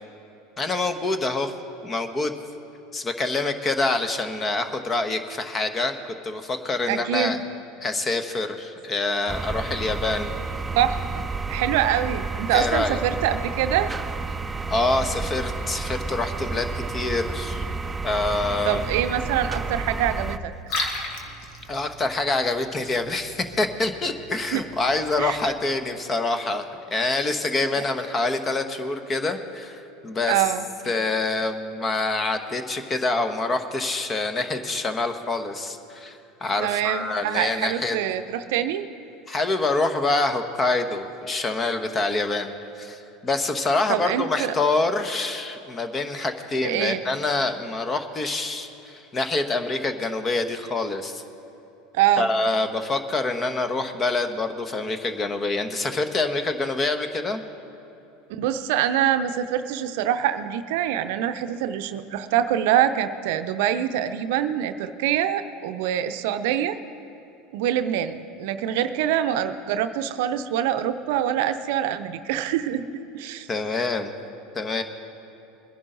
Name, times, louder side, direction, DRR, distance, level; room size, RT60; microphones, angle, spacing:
voice 1, 0.6-1.5 1.8-2.3 2.9-7.4 7.8-10.3 12.5-13.0 14.7-17.6 18.0-18.8 20.7-20.9 21.7-30.4 30.9-38.0 39.3-51.2 52.2-57.4 73.5-74.1 74.5-74.8, left 3 dB, 25° left, 8 dB, 1.1 m, -26 dB
voice 2, 6.9-7.4 10.7-11.2 11.5-13.9 18.6-20.5 24.5-24.6 25.2-25.5 27.8-27.9 30.3-30.6 36.6-38.9 43.9-44.5 46.6-47.0 51.9-52.3 58.4-66.8 67.5-72.9 73.1-73.5, right 10 dB, 70° right, 10 dB, 0.6 m, -25 dB
sound 1, 9.3-20.4, right 4 dB, 15° right, 0.6 m, -31 dB
Liquid, 20.5-25.5, left 2 dB, 60° left, 1.9 m, -36 dB
21.5 x 10.5 x 3.9 m, 3.0 s
hypercardioid pair, 85°, 0 cm